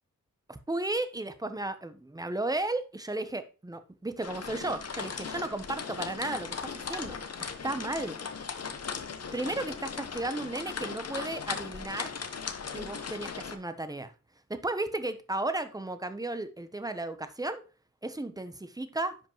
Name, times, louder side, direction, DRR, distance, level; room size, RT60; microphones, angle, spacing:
voice 1, 0.5-8.2 9.3-12.1 12.7-14.1 14.5-17.6 18.0-19.2, right 2 dB, 10° right, 0.6 m, -34 dB
sound 1, 4.2-13.6, left 5 dB, 50° left, 0.8 m, -38 dB
10.0 x 5.2 x 2.9 m
wide cardioid pair, 125°, 34 cm